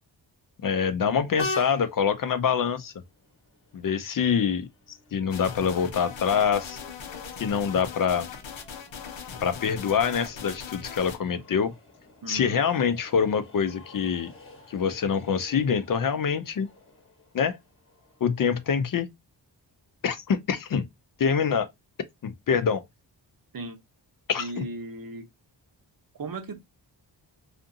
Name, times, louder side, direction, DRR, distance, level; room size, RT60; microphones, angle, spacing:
voice 1, 0.6-2.9 3.7-4.7 5.1-6.8 7.4-8.3 9.4-11.7 12.3-14.3 14.7-16.7 17.3-17.6 18.2-19.1 20.0-20.9 21.2-21.7 22.2-22.8 24.3-24.6, left 7 dB, 50° left, 0.4 m, -25 dB
Train, 1.4-18.7, left 2 dB, 30° left, 0.9 m, -45 dB
sound 1, 5.3-11.2, left 7 dB, 85° left, 0.7 m, -40 dB
voice 2, 12.2-12.6 23.5-23.8 24.4-25.3 26.1-26.6, right 3 dB, 50° right, 0.8 m, -36 dB
2.5 x 2.5 x 2.5 m
cardioid pair, 60°, 44 cm